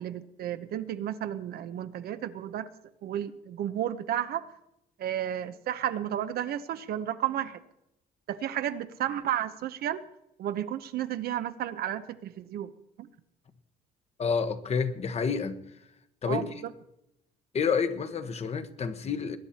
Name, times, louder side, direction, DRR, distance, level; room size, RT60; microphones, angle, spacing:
voice 1, 0.0-2.7 3.0-4.5 5.0-7.6 8.3-10.0 10.4-12.7 13.0-13.1 16.3-16.7, right 11 dB, 65° right, 1.0 m, -32 dB
voice 2, 14.2-15.6 16.2-16.6 17.5-19.4, left 5 dB, 40° left, 1.3 m, -29 dB
21.0 x 10.0 x 4.3 m
cardioid pair, 110°, 17 cm